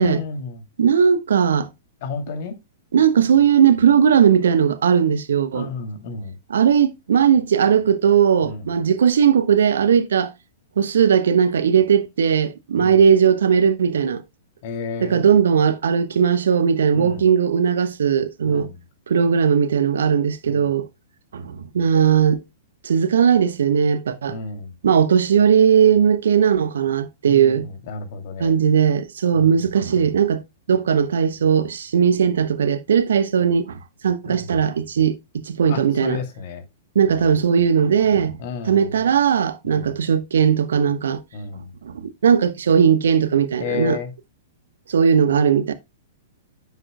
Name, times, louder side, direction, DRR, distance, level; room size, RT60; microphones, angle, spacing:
voice 1, 0.0-0.6 2.0-2.6 5.5-6.4 8.4-8.7 12.8-13.0 14.6-15.2 16.9-17.3 18.4-18.8 20.4-20.7 24.3-24.7 27.3-28.6 29.3-29.6 34.2-34.5 35.7-36.6 37.1-37.3 38.4-38.9 39.6-40.0 41.3-41.7 43.6-44.1, left 5 dB, 50° left, 2.6 m, -32 dB
voice 2, 0.8-1.7 2.9-5.7 6.5-10.3 10.8-14.2 15.0-18.7 19.1-20.9 21.3-22.4 22.8-24.4 24.8-27.7 28.4-30.4 30.7-33.8 34.0-36.2 36.9-38.4 38.6-41.2 41.8-44.0 44.9-45.7, right 7 dB, 70° right, 1.0 m, -18 dB
9.8 x 7.3 x 2.2 m
figure-of-eight pair, 110°, 0 cm